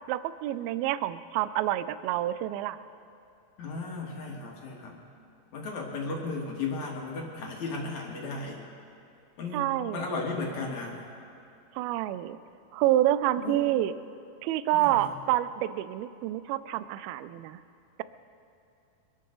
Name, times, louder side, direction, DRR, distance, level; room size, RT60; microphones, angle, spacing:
voice 1, 0.1-2.8 9.5-10.0 11.8-12.4 12.7-13.9 14.4-17.6, right 13 dB, 80° right, 14 dB, 2.3 m, -28 dB
voice 2, 3.6-5.0 5.5-8.6 9.4-11.0 13.4-13.6 14.7-15.2, left 3 dB, 55° left, -1 dB, 2.9 m, -35 dB
25.5 x 12.5 x 3.9 m, 2.7 s
omnidirectional pair, 4.6 m